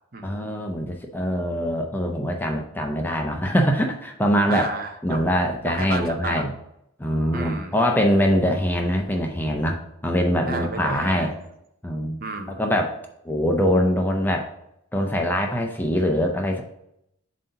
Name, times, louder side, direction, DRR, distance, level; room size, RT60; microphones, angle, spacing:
voice 1, 0.2-4.7 5.0-6.5 7.0-11.3 11.8-12.2 12.6-13.0 13.2-14.5 14.9-16.6, equal, 10° left, 2 dB, 0.5 m, -23 dB
voice 2, 4.5-5.3 5.6-6.5 7.3-7.7 10.5-11.4 12.2-12.6, right 3 dB, 45° right, 6 dB, 0.6 m, -32 dB
7.4 x 2.7 x 5.6 m, 0.80 s
head